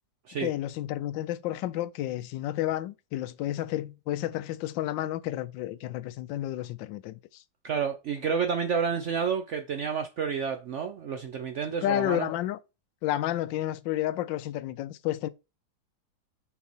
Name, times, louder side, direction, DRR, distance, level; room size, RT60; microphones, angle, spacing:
voice 1, 0.4-7.4 11.8-12.6 13.0-15.3, left 13 dB, 85° left, 1.3 m, -31 dB
voice 2, 7.6-12.3, right 6 dB, 90° right, 0.6 m, -30 dB
5.6 x 4.1 x 4.5 m
omnidirectional pair, 2.0 m